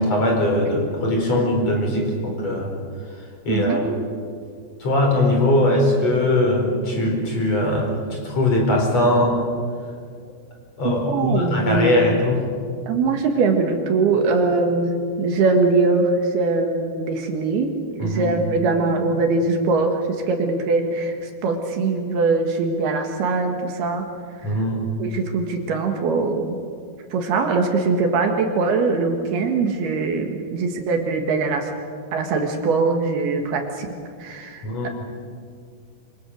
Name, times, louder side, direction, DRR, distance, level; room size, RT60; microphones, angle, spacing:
voice 1, 0.0-2.7 3.5-3.8 4.8-9.4 10.8-12.4 18.0-18.3 24.4-25.0 34.6-34.9, left 1 dB, 35° left, 0 dB, 5.4 m, -20 dB
voice 2, 3.5-4.0 10.8-12.0 12.9-24.1 25.0-26.5 27.1-31.7 32.1-33.9 34.2-34.9, right 3 dB, 70° right, 3 dB, 3.6 m, -22 dB
26.0 x 26.0 x 6.6 m, 2.1 s
omnidirectional pair, 5.0 m